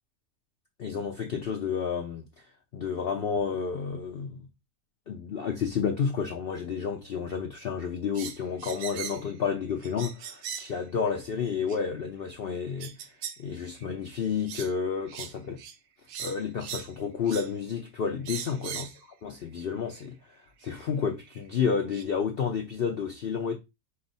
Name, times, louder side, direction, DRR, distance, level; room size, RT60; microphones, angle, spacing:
voice 1, 0.8-2.2 2.7-4.5 5.1-13.0 13.4-15.6 16.2-18.9 19.2-20.2 20.6-23.5, left 6 dB, 80° left, 0.5 m, -30 dB
sound 1, 8.2-9.3 9.8-10.8 11.7-11.8 12.8-13.4 13.8-14.0 14.5-14.7 15.1-15.3 15.6-15.8 16.1-16.9 17.3-17.5 18.3-19.0 20.0-20.1 21.3-21.4 21.9-22.0, right 8 dB, 75° right, 1.1 m, -39 dB
5.3 x 2.1 x 3.9 m
omnidirectional pair, 1.7 m